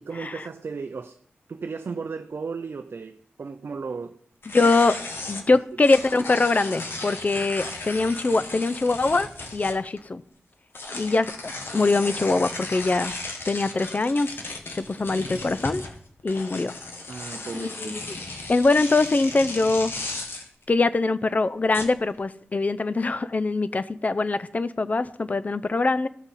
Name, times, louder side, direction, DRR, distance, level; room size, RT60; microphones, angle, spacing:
voice 1, 0.1-1.2 1.5-4.2 17.1-18.1, right 5 dB, 60° right, 0.5 m, -35 dB
sound 1, 4.4-10.0 10.7-20.5 21.7-22.2, left 2 dB, 60° left, 1.2 m, -35 dB
voice 2, 4.5-4.9 5.3-10.2 10.9-13.1 13.5-14.4 14.7-15.8 16.2-16.7 17.5-18.0 18.5-19.9 20.7-26.1, left 3 dB, 35° left, 0.5 m, -23 dB
15.0 x 5.9 x 4.1 m
wide cardioid pair, 85°, 4 cm